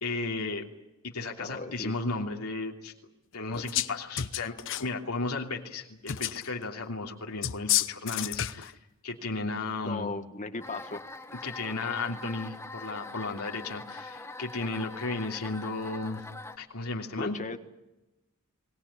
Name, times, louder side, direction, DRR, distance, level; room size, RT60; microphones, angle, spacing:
voice 1, 0.0-0.7 1.0-2.9 3.3-4.5 4.8-8.7 9.0-10.1 11.4-16.2 16.6-17.3, left 3 dB, 85° left, 1 dB, 3.1 m, -34 dB
voice 2, 1.4-1.9 9.8-11.0 17.2-17.6, left 3 dB, 35° left, 8 dB, 1.6 m, -36 dB
sound 1, 3.5-3.9 4.2-4.9 6.1-6.5 7.4-8.7, left 11 dB, 60° left, 0.9 m, -30 dB
sound 2, 10.6-16.6, left 2 dB, 10° left, 1.4 m, -43 dB
25.0 x 19.5 x 10.0 m, 0.98 s
head